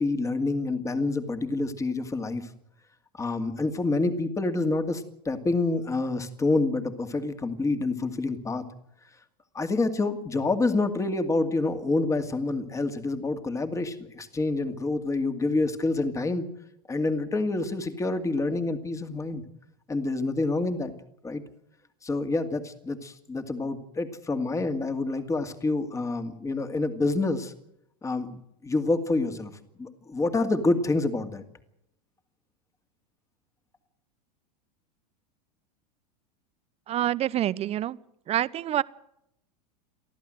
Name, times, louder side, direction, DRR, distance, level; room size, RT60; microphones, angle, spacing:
voice 1, 0.0-2.5 3.1-8.6 9.5-16.5 16.9-19.4 19.9-20.9 21.2-21.4 22.0-27.5 28.0-29.5 29.8-31.4, left 3 dB, 15° left, 8 dB, 2.3 m, -27 dB
voice 2, 36.9-38.0 38.3-38.8, right 12 dB, 30° right, 18 dB, 0.8 m, -26 dB
29.5 x 11.5 x 7.8 m, 0.79 s
hypercardioid pair, 115°, 20 cm